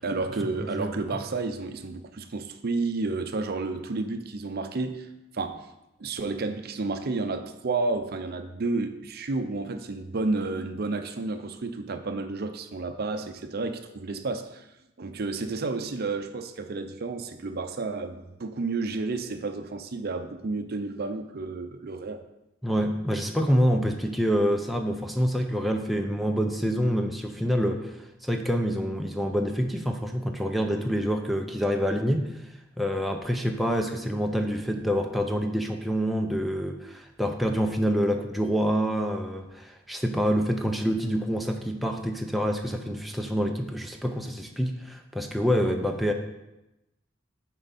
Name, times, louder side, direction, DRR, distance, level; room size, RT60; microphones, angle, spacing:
voice 1, 0.0-5.1 5.3-5.6 6.0-14.7 15.0-22.2, right 3 dB, 55° right, 8 dB, 0.6 m, -31 dB
voice 2, 0.6-1.0 22.6-32.3 32.8-46.1, equal, ahead, 2 dB, 0.5 m, -27 dB
8.8 x 4.5 x 4.1 m, 0.93 s
head